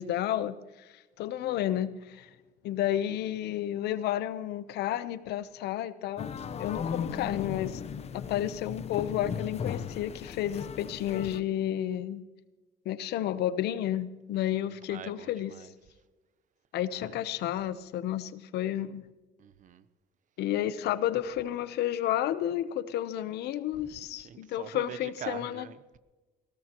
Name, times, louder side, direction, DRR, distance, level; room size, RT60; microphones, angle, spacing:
voice 1, 0.0-2.3 2.6-6.3 6.6-12.2 12.8-15.5 16.7-19.0 20.4-25.7, left 12 dB, 75° left, 0.9 m, -31 dB
sound 1, 6.2-11.4, left 7 dB, 40° left, 0.8 m, -36 dB
voice 2, 8.1-8.5 14.3-15.7 16.9-17.2 19.4-19.9 23.8-26.0, right 9 dB, 50° right, 0.8 m, -45 dB
20.5 x 17.5 x 3.0 m
cardioid pair, 110°, 17 cm